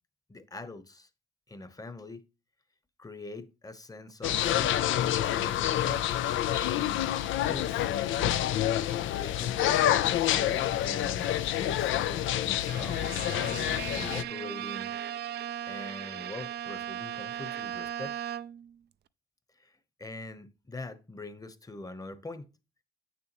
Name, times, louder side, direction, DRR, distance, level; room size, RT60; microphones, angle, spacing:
voice 1, 0.3-1.1 1.5-2.2 3.0-6.2 7.4-7.9 9.1-13.3 13.9-14.9 15.7-18.2 19.6-22.5, left 2 dB, 20° left, 1.0 m, -43 dB
sound 1, 4.2-14.2, left 12 dB, 80° left, 0.6 m, -28 dB
Bowed string instrument, 12.7-18.7, right 10 dB, 55° right, 0.4 m, -37 dB
8.4 x 6.9 x 3.0 m
cardioid pair, 90°, 20 cm